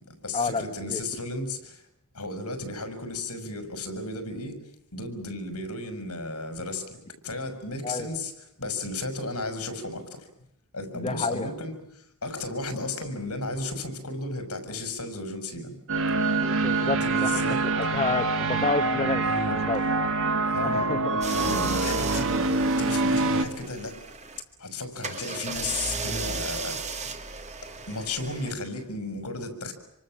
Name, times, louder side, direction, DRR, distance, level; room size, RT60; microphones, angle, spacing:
voice 1, 0.1-1.8 2.1-4.6 4.9-8.3 8.6-10.3 10.7-15.8 16.9-17.6 19.2-19.6 20.4-20.9 21.3-24.0 24.6-26.8 27.9-29.7, left 2 dB, 75° left, 8 dB, 5.6 m, -34 dB
voice 2, 11.0-11.5 16.3-17.4 17.9-19.2 19.7-19.8 20.6-21.2, left 3 dB, 25° left, 5 dB, 1.3 m, -29 dB
sound 1, 15.9-23.5, right 3 dB, 60° right, 1.9 m, -25 dB
sound 2, 21.2-24.4 25.0-28.5, right 4 dB, 30° right, 2.0 m, -35 dB
27.0 x 25.0 x 7.6 m, 0.78 s
head